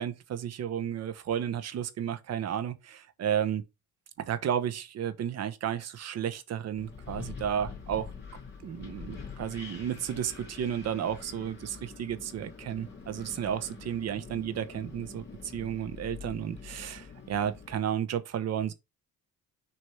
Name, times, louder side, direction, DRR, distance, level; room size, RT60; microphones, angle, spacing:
voice 1, 0.0-3.6 4.2-8.1 8.6-18.7, right 9 dB, 55° right, 1.1 m, -33 dB
Wind, 6.8-17.8, left 5 dB, 35° left, 2.4 m, -45 dB
6.5 x 3.0 x 5.8 m
cardioid pair, 125°, 31 cm